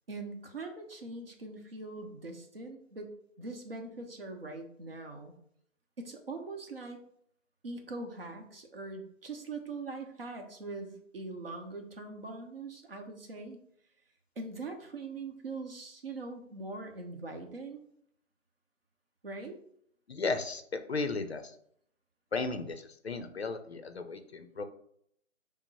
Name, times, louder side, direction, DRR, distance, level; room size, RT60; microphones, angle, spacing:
voice 1, 0.1-5.4 6.0-7.0 7.6-13.6 14.4-17.8 19.2-19.6, right 3 dB, 45° right, 4 dB, 1.0 m, -42 dB
voice 2, 20.1-21.6 22.3-24.6, left 3 dB, 55° left, 8 dB, 0.6 m, -35 dB
6.1 x 2.1 x 4.1 m, 0.68 s
figure-of-eight pair, 160°, 39 cm